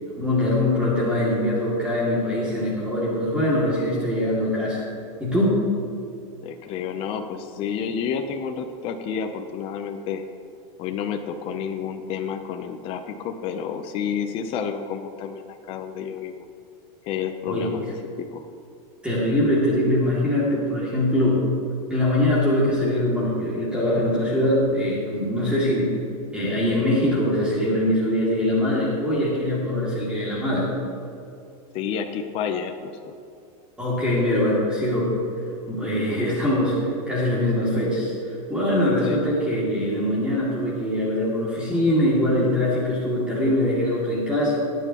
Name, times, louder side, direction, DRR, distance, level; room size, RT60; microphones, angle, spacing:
voice 1, 0.1-4.9 5.2-5.7 17.5-17.8 19.0-21.5 21.9-26.0 26.3-30.7 33.8-35.1 35.7-36.8 37.1-44.6, left 1 dB, 5° right, -7 dB, 2.4 m, -22 dB
voice 2, 6.4-10.2 10.8-16.5 17.0-17.8 18.2-18.4 31.7-33.1 39.0-39.2, left 7 dB, 30° left, 5 dB, 0.6 m, -30 dB
21.0 x 9.1 x 3.0 m, 2.5 s
supercardioid pair, 155°, 19 cm